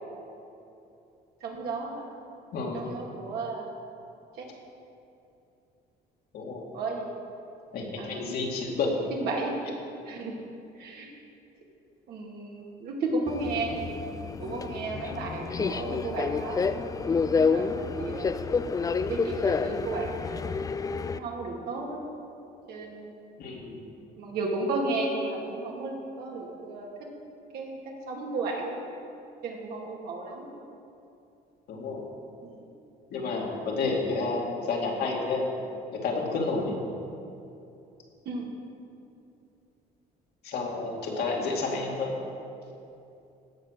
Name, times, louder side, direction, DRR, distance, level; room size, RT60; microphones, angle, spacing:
voice 1, 1.4-2.1 2.7-3.7 4.3-4.5 6.7-7.1 8.0-8.3 9.2-10.3 10.8-11.1 12.1-13.8 14.4-16.7 17.3-18.3 19.0-20.4 21.1-22.0 22.7-23.1 24.2-26.9 27.5-28.8 29.4-30.5 32.4-32.6 33.6-33.8 38.2-38.5 40.6-40.8 41.4-41.5, right 3 dB, 70° right, -1 dB, 2.4 m, -34 dB
voice 2, 2.5-2.9 6.3-6.7 7.7-9.0 23.4-23.8 31.7-32.1 33.1-35.5 35.9-36.8 40.4-42.1, left 3 dB, 65° left, -1 dB, 2.3 m, -30 dB
Subway metro underground, 13.3-21.2, left 5 dB, 20° left, 0.4 m, -29 dB
16.0 x 5.7 x 6.7 m, 2.7 s
cardioid pair, 110°, 17 cm